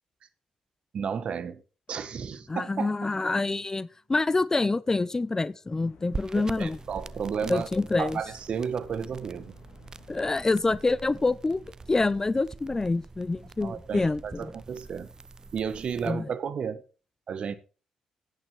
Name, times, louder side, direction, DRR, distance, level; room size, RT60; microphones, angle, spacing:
voice 1, 0.9-1.6 1.9-2.9 6.3-7.7 8.0-9.5 13.6-15.1 15.5-16.8 17.3-17.6, right 7 dB, 55° right, 1.1 m, -32 dB
sound 1, 1.9-5.2, left 1 dB, 45° left, 4.8 m, -69 dB
voice 2, 2.5-6.8 7.5-8.2 10.1-11.6 11.9-14.5 16.0-16.3, left 3 dB, 25° left, 0.5 m, -26 dB
sound 2, 5.7-11.3, left 6 dB, 65° left, 1.9 m, -56 dB
sound 3, 6.1-16.1, right 3 dB, 30° right, 0.5 m, -44 dB
9.2 x 8.8 x 4.4 m
hypercardioid pair, 45°, 2 cm